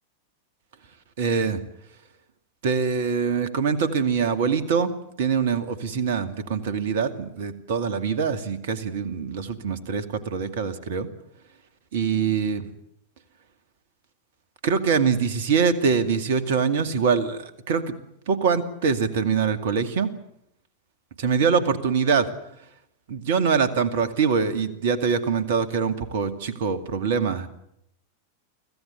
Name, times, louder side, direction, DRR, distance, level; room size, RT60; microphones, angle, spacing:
voice 1, 1.2-1.6 2.6-4.9 5.2-11.1 11.9-12.7 14.6-17.9 18.3-20.1 21.2-22.3 23.1-27.5, right 6 dB, 55° right, 11 dB, 2.3 m, -24 dB
25.0 x 16.0 x 9.8 m, 0.78 s
figure-of-eight pair, 90°, 0 cm